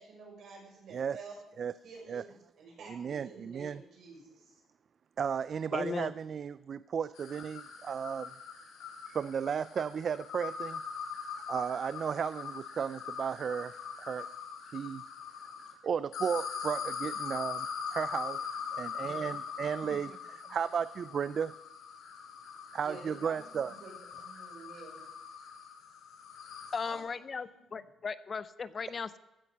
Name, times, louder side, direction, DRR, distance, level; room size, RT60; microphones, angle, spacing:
voice 1, 0.0-1.4 1.8-4.6 22.7-25.1 26.8-27.0 27.3-27.8, right 4 dB, 70° right, -1 dB, 5.9 m, -50 dB
voice 2, 2.9-3.8 5.2-8.3 9.1-10.8 11.5-14.3 14.7-15.0 15.8-21.5 22.7-23.8, right 7 dB, 50° right, 16 dB, 0.3 m, -34 dB
voice 3, 5.7-6.1 26.7-29.2, left 5 dB, 40° left, 15 dB, 0.6 m, -37 dB
sound 1, 7.1-15.7 16.1-27.0, left 6 dB, 85° left, 2.8 m, -42 dB
15.5 x 8.9 x 5.5 m, 0.99 s
cardioid pair, 90°, 0 cm